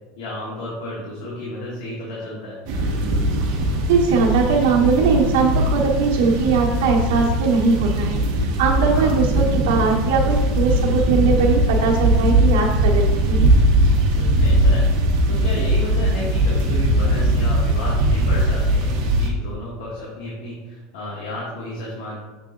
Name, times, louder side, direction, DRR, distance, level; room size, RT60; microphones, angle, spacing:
voice 1, 0.1-2.6 8.9-9.1 14.1-14.9 15.3-22.2, left 1 dB, 85° left, -5 dB, 1.5 m, -32 dB
sound 1, 2.7-19.3, right 1 dB, 55° right, 1.0 m, -19 dB
voice 2, 3.9-8.2 8.6-13.5, right 4 dB, 85° right, -1 dB, 1.0 m, -20 dB
6.5 x 3.8 x 3.8 m, 1.2 s
supercardioid pair, 175°, 0 cm